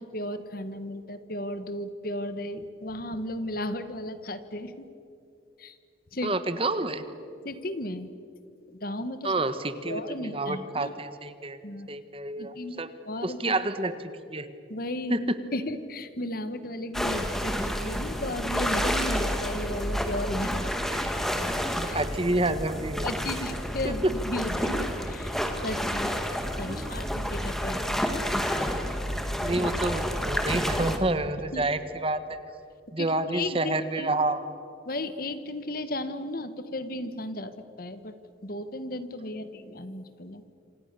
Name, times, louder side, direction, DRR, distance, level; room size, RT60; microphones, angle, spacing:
voice 1, 0.0-4.9 5.6-5.8 6.1-6.3 7.4-8.1 8.7-9.3 9.9-10.9 11.6-11.9 12.4-13.6 14.7-15.2 15.5-20.6 21.6-22.0 23.0-26.2 26.6-28.1 31.5-31.6 33.0-34.1 34.8-37.5 37.8-38.1 38.4-40.4, left 1 dB, 50° left, 11 dB, 1.4 m, -35 dB
voice 2, 6.2-7.0 9.2-11.6 11.9-12.9 13.2-14.5 15.1-15.2 17.1-17.3 20.9-21.5 21.9-23.1 23.8-23.9 26.7-27.0 29.4-32.4 32.9-34.4, right 2 dB, 30° right, 11 dB, 1.2 m, -29 dB
sound 1, 16.9-31.0, equal, ahead, 1.8 m, -29 dB
27.5 x 27.0 x 6.9 m, 2.6 s
head